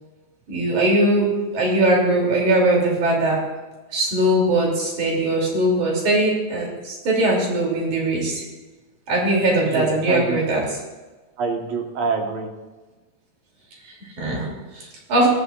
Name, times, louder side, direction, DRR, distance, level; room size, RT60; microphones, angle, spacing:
voice 1, 0.5-3.4 3.9-8.5 9.1-10.8 13.8-14.5 14.7-15.3, right 1 dB, 85° right, -2 dB, 4.2 m, -20 dB
voice 2, 9.7-10.4 11.4-12.5 14.4-14.6, right 4 dB, 65° right, 3 dB, 2.3 m, -26 dB
18.5 x 12.5 x 2.4 m, 1.2 s
omnidirectional pair, 3.4 m